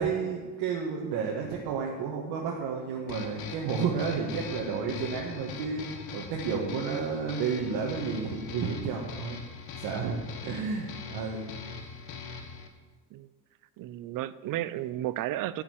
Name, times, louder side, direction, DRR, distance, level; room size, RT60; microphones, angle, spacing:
voice 1, 0.0-5.8 6.1-9.4 9.8-11.5, right 5 dB, 85° right, -2 dB, 1.7 m, -31 dB
sound 1, 3.1-12.7, left 6 dB, 65° left, 1.5 m, -41 dB
voice 2, 13.8-15.6, right 14 dB, 55° right, 16 dB, 0.6 m, -33 dB
11.5 x 5.8 x 8.3 m, 1.3 s
cardioid pair, 170°, 39 cm